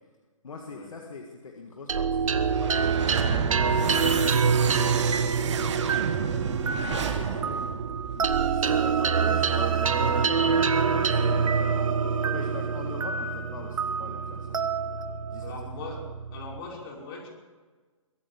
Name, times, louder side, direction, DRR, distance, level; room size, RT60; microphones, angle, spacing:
voice 1, 0.4-3.2 4.6-6.5 6.8-7.7 8.2-14.7 15.3-15.5, left 4 dB, 75° left, 2 dB, 1.9 m, -42 dB
sound 1, 1.9-16.6, right 6 dB, 75° right, 1.3 m, -26 dB
sound 2, 2.4-8.7, right 7 dB, 60° right, 1.6 m, -31 dB
voice 2, 15.4-16.0 16.3-17.3, left 3 dB, 45° left, -1 dB, 5.5 m, -40 dB
22.5 x 9.0 x 7.1 m, 1.4 s
figure-of-eight pair, 130°, 17 cm